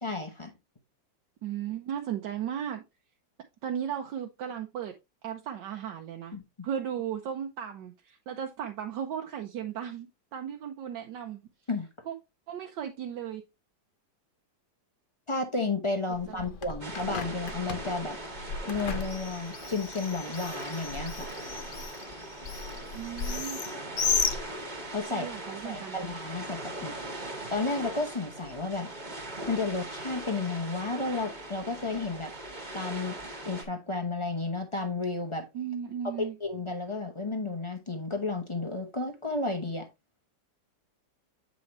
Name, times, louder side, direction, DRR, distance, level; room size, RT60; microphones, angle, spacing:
voice 1, 0.0-0.5 6.3-6.4 11.7-11.9 15.3-18.2 18.6-21.3 24.9-25.3 25.6-26.9 27.5-28.9 29.5-32.3 32.7-33.2 33.4-35.5 36.0-39.9, left 3 dB, 25° left, 0.7 m, -32 dB
voice 2, 1.4-2.8 3.6-4.9 5.2-6.4 6.6-11.4 12.1-12.2 12.5-13.4 16.3-16.5 22.9-23.6 25.1-26.0 35.5-36.4, right 9 dB, 75° right, 1.4 m, -36 dB
Bird, 16.1-25.0, left 5 dB, 85° left, 0.4 m, -35 dB
sound 1, 16.8-33.6, right 1 dB, 25° right, 1.5 m, -40 dB
8.4 x 5.3 x 3.0 m
omnidirectional pair, 2.0 m